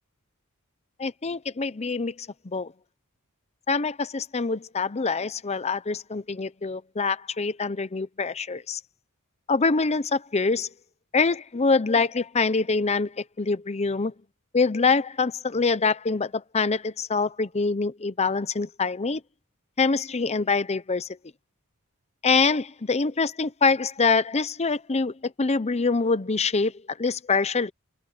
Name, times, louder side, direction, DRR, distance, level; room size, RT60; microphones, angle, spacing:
voice 1, 1.0-2.7 3.7-8.8 9.5-10.7 11.1-14.1 14.5-19.2 19.8-21.2 22.2-27.7, left 4 dB, 30° left, 0.7 m, -25 dB
head